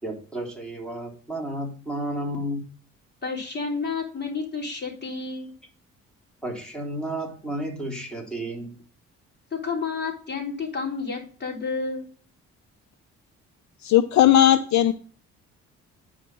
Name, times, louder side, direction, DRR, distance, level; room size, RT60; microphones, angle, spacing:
voice 1, 0.0-2.6 6.4-8.7, right 1 dB, 5° left, -1 dB, 3.5 m, -32 dB
voice 2, 3.2-5.5 9.5-12.1, left 4 dB, 35° left, 0 dB, 3.6 m, -30 dB
voice 3, 13.8-14.9, left 11 dB, 65° left, 11 dB, 0.7 m, -17 dB
9.4 x 5.1 x 6.2 m, 0.41 s
cardioid pair, 90°, 30 cm